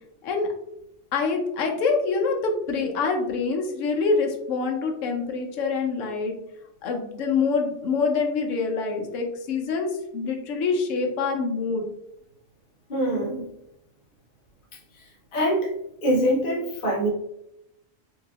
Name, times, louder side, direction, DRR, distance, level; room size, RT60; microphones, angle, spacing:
voice 1, 1.1-6.4 6.8-11.9, left 4 dB, 70° left, 3 dB, 1.0 m, -25 dB
voice 2, 12.9-13.5 15.3-15.7 16.0-17.1, equal, 45° left, -2 dB, 0.9 m, -23 dB
4.8 x 2.7 x 2.4 m, 0.82 s
omnidirectional pair, 1.4 m